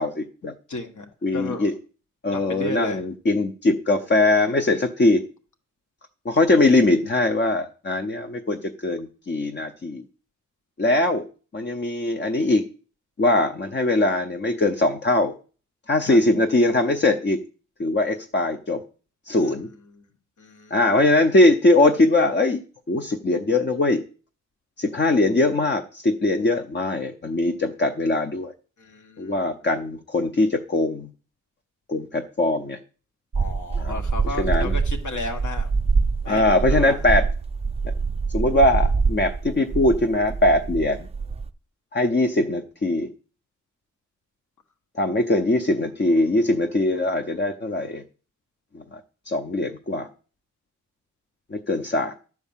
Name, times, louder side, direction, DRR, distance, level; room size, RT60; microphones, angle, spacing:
voice 1, 0.0-0.5 1.2-1.7 2.2-5.2 6.2-10.0 10.8-11.2 11.5-12.6 13.2-15.3 15.9-17.4 17.8-18.8 19.3-19.7 20.7-22.6 22.9-24.0 24.8-28.5 29.2-31.1 31.9-32.8 33.8-33.9 34.4-34.7 36.3-37.2 38.3-41.0 41.9-43.1 45.0-48.0 48.7-49.0 49.3-50.1 51.5-52.2, left 2 dB, 35° left, 5 dB, 0.7 m, -21 dB
voice 2, 0.7-1.1 1.3-1.7 2.3-3.1 16.1-16.2 19.3-20.1 20.4-20.9 28.8-29.7 33.3-35.7 36.2-37.0, left 2 dB, 70° left, 4 dB, 1.6 m, -34 dB
sound 1, 33.3-41.5, right 4 dB, 20° right, 0.5 m, -25 dB
11.5 x 4.7 x 7.3 m, 0.39 s
wide cardioid pair, 120°, 31 cm